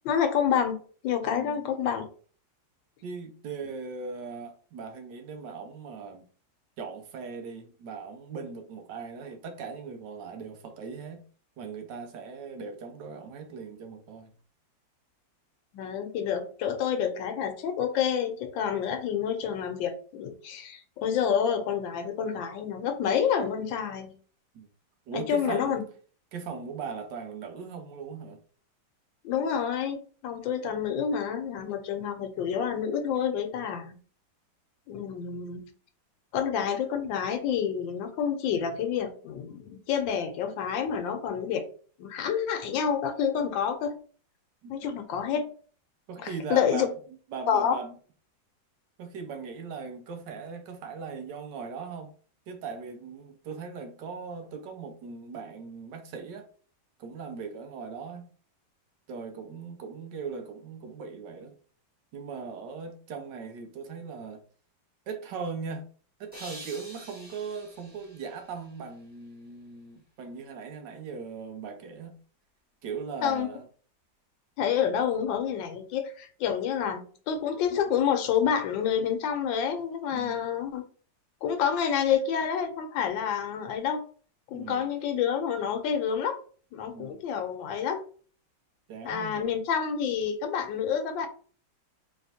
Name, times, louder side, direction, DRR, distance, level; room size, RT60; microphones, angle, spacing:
voice 1, 0.0-2.1 15.7-24.1 25.1-25.8 29.2-34.0 34.9-35.6 36.3-41.7 42.0-43.9 44.7-45.5 46.2-46.9 47.5-47.8 73.2-73.5 74.6-80.8 81.4-84.0 84.5-86.4 86.7-88.0 89.0-91.3, left 8 dB, 80° left, 1.4 m, -28 dB
voice 2, 1.3-1.7 3.0-6.3 6.8-11.2 11.6-14.3 24.5-24.7 25.1-25.8 26.3-28.4 44.6-44.8 46.1-46.9 47.3-47.9 49.0-52.1 52.5-56.5 57.0-58.3 59.1-61.5 62.1-64.4 65.1-65.9 66.2-72.2 72.8-73.7 80.1-80.4 84.5-84.9 86.9-87.2 88.9-89.6, right 5 dB, 75° right, 1.2 m, -39 dB
sound 1, 66.3-69.5, right 1 dB, 5° right, 1.4 m, -48 dB
4.0 x 3.5 x 2.7 m
omnidirectional pair, 2.0 m